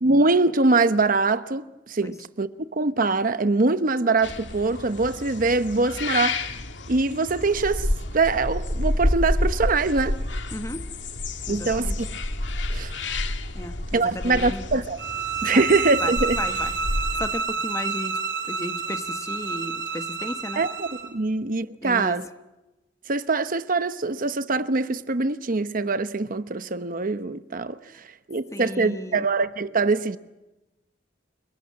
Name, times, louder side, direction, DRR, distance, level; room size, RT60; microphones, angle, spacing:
voice 1, 0.0-6.4 6.9-10.2 11.5-11.9 12.7-12.9 13.9-15.0 15.4-16.4 20.6-22.2 23.1-30.2, right 3 dB, 50° right, 0.9 m, -23 dB
sound 1, 4.2-17.3, left 1 dB, 85° left, 2.1 m, -29 dB
voice 2, 10.5-10.8 11.5-11.9 13.5-14.6 15.5-15.7 16.0-16.7 17.2-18.2 18.5-20.6 21.8-22.2 28.5-29.3, left 1 dB, 15° left, 1.3 m, -34 dB
sound 2, 15.0-21.1, right 5 dB, 75° right, 2.9 m, -29 dB
29.5 x 20.0 x 7.6 m
head